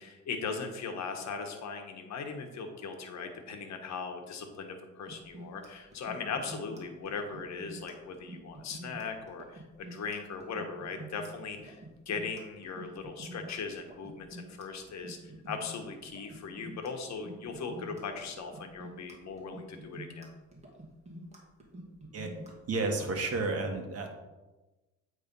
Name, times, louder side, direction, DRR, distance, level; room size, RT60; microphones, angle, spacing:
voice 1, 0.0-9.6 9.9-11.8 12.1-20.3, left 5 dB, 65° left, 4 dB, 1.3 m, -39 dB
sound 1, 5.1-23.0, right 1 dB, 20° right, 2.0 m, -47 dB
voice 2, 22.7-24.1, right 3 dB, 55° right, 3 dB, 1.5 m, -31 dB
8.4 x 3.6 x 5.3 m, 1.1 s
cardioid pair, 90°, 30 cm